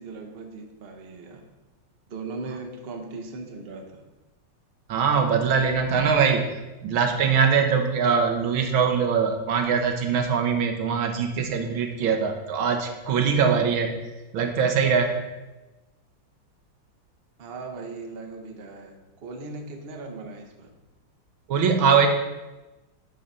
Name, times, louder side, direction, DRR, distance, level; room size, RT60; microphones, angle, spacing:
voice 1, 0.0-1.5 2.1-4.1 17.4-19.0 19.2-20.8, right 3 dB, 45° right, 3 dB, 0.8 m, -38 dB
voice 2, 4.9-6.5 6.8-13.9 14.3-15.2 21.5-22.1, right 6 dB, 75° right, 4 dB, 1.7 m, -22 dB
10.0 x 4.0 x 6.0 m, 1.1 s
omnidirectional pair, 2.3 m